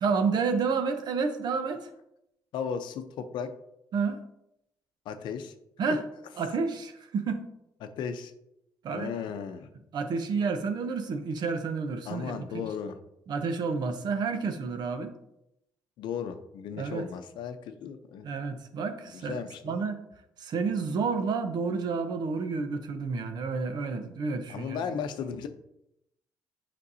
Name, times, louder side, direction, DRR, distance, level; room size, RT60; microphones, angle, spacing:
voice 1, 0.0-1.9 3.9-4.2 5.8-6.0 6.4-7.4 8.8-9.1 9.9-12.6 13.3-15.1 16.8-17.1 18.2-20.0 20.4-24.8, right 5 dB, 65° right, 8 dB, 0.8 m, -30 dB
voice 2, 2.5-3.5 5.1-5.5 7.8-8.3 8.9-9.7 12.1-13.0 16.0-18.3 19.1-19.8 24.5-25.5, left 7 dB, 80° left, 8 dB, 0.6 m, -35 dB
8.4 x 5.2 x 2.7 m, 0.82 s
cardioid pair, 85°, 8 cm